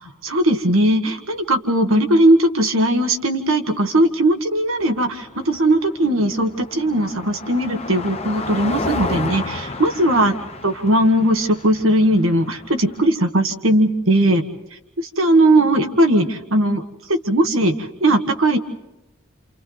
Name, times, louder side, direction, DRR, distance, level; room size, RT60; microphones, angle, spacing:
voice 1, 0.0-10.3 10.6-14.4 15.0-16.8 17.1-18.6, right 1 dB, 80° right, 6 dB, 1.7 m, -18 dB
Car passing by, 4.8-13.1, left 3 dB, 30° left, 0.9 m, -32 dB
29.5 x 28.5 x 4.0 m, 0.96 s
head